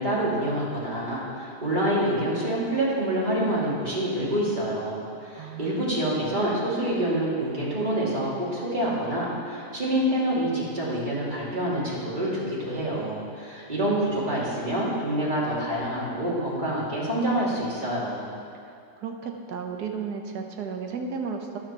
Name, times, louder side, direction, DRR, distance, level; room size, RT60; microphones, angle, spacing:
voice 1, 0.0-18.3, right 1 dB, 30° right, -7 dB, 2.4 m, -27 dB
voice 2, 5.4-6.0 19.0-21.6, right 5 dB, 75° right, 3 dB, 1.5 m, -34 dB
13.0 x 11.0 x 2.9 m, 2.4 s
omnidirectional pair, 1.8 m